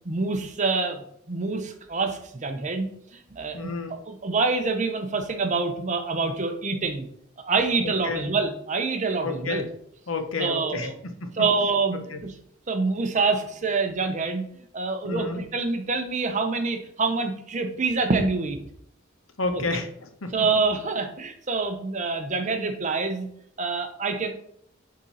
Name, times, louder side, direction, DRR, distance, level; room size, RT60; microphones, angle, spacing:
voice 1, 0.0-3.7 4.1-7.1 7.4-9.6 10.4-10.9 11.4-12.3 12.7-14.4 14.7-18.6 19.5-19.6 20.3-23.3 23.6-24.3, right 4 dB, 35° right, 6 dB, 0.8 m, -26 dB
voice 2, 3.5-4.0 7.8-8.3 9.2-9.7 10.1-11.3 11.9-12.2 15.0-15.4 19.4-20.3, left 3 dB, 80° left, 7 dB, 0.9 m, -31 dB
7.1 x 3.8 x 4.2 m, 0.68 s
head